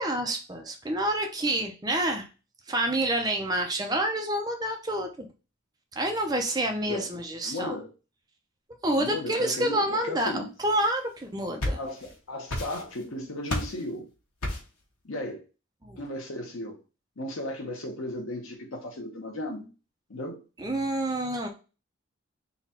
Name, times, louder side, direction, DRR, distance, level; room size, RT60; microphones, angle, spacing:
voice 1, 0.0-2.3 2.7-5.3 6.0-7.8 8.8-11.8 15.8-16.0 20.6-21.5, right 1 dB, 20° right, 0.5 m, -28 dB
voice 2, 7.4-7.9 9.0-10.5 11.7-14.1 15.0-15.4 16.0-16.8 17.2-19.7 20.1-20.4, left 1 dB, 70° left, 0.9 m, -35 dB
sound 1, 11.2-12.2 12.5-13.1 13.5-13.9 14.4-14.8, left 1 dB, 90° left, 1.2 m, -32 dB
3.9 x 2.4 x 4.2 m
head